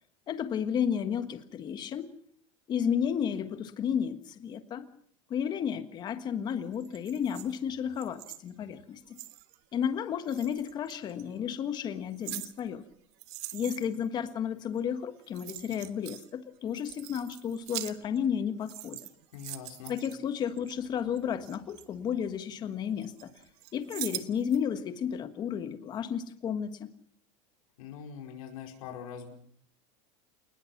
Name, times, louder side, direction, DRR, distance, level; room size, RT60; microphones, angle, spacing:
voice 1, 0.3-2.1 2.7-4.8 5.3-9.2 9.7-12.8 13.5-19.0 19.9-23.3 23.7-26.9, left 8 dB, 25° left, 10 dB, 1.5 m, -32 dB
sound 1, 6.7-9.6 10.3-11.2 11.8-14.1 15.0-15.1 15.2-16.3 16.6-18.3 18.6-20.7 21.2-22.6 23.0-24.6 25.0-25.1, right 18 dB, 55° right, 1.3 m, -43 dB
voice 2, 19.3-20.0 27.8-29.3, left 8 dB, 85° left, 2 dB, 4.9 m, -43 dB
28.0 x 20.0 x 6.0 m, 0.62 s
supercardioid pair, 170°, 17 cm